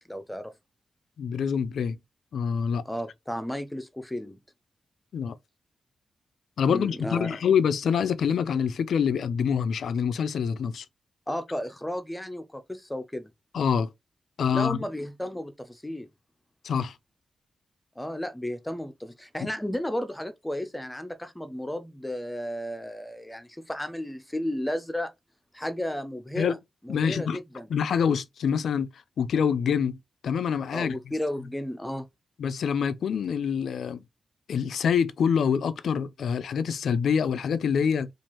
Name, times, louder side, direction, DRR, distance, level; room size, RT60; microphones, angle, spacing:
voice 1, 0.1-0.5 2.8-4.4 6.7-7.4 11.3-13.3 14.5-16.1 18.0-25.1 25.5-26.6 26.8-27.7 30.7-32.1, left 1 dB, 10° left, 0.6 m, -33 dB
voice 2, 1.2-2.0 2.3-2.8 5.1-5.4 6.6-10.9 13.5-13.9 14.4-14.8 16.6-17.0 19.4-19.5 26.4-26.5 26.9-27.4 27.7-28.9 29.2-30.0 30.2-31.0 32.4-34.0 34.5-38.1, left 7 dB, 85° left, 0.4 m, -26 dB
4.4 x 2.4 x 3.0 m
wide cardioid pair, 105°, 0 cm